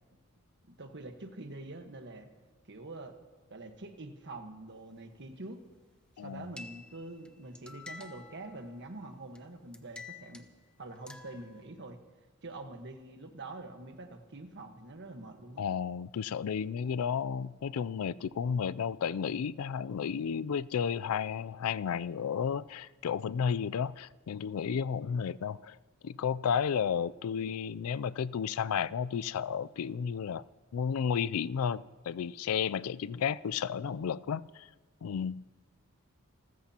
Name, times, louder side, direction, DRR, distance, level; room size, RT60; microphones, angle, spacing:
voice 1, 0.7-2.3 2.7-3.2 3.5-5.6 6.2-10.5 10.8-12.0 12.4-15.7, right 2 dB, 55° right, 1.4 m, -45 dB
voice 2, 6.2-6.5 15.6-25.8 26.0-30.4 30.7-34.7 35.0-35.5, left 7 dB, 80° left, 0.4 m, -32 dB
sound 1, 6.6-7.3 7.6-8.9 9.4-9.5 9.7-10.5 11.1-11.6, left 3 dB, 5° left, 0.7 m, -49 dB
28.0 x 14.0 x 2.9 m
head